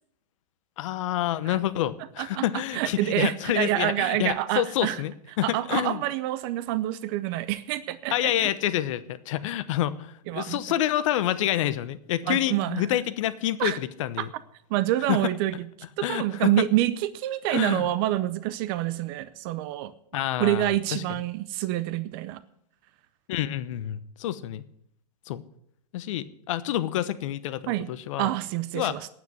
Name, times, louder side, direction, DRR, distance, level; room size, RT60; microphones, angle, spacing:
voice 1, 0.8-6.0 8.1-14.3 15.1-15.2 16.0-16.5 17.5-17.9 20.1-21.0 23.3-24.6 25.3-25.4 25.9-28.3 28.7-29.0, left 13 dB, 50° left, 14 dB, 1.0 m, -28 dB
voice 2, 2.7-5.0 5.4-8.3 10.3-10.6 12.3-12.9 13.6-13.8 14.2-14.3 14.7-15.7 16.0-19.9 20.4-22.4 27.7-27.9 28.2-29.1, right 15 dB, 35° right, 16 dB, 0.6 m, -27 dB
9.3 x 9.2 x 9.5 m, 0.71 s
hypercardioid pair, 145°, 21 cm